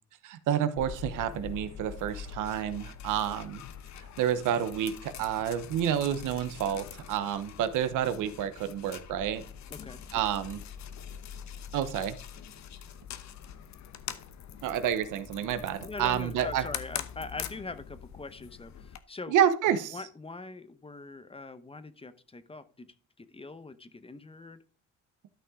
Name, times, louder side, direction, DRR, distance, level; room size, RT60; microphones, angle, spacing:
voice 1, 0.2-3.6 4.2-9.4 10.1-10.6 11.7-12.2 14.6-16.6 19.3-19.9, right 9 dB, 85° right, 12 dB, 0.9 m, -29 dB
sound 1, 0.8-19.0, left 8 dB, 65° left, 1.0 m, -43 dB
voice 2, 9.7-10.2 15.8-19.4 19.9-22.9 23.2-24.6, left 3 dB, 20° left, 13 dB, 0.9 m, -42 dB
12.5 x 5.6 x 3.7 m, 0.40 s
cardioid pair, 90°, 30 cm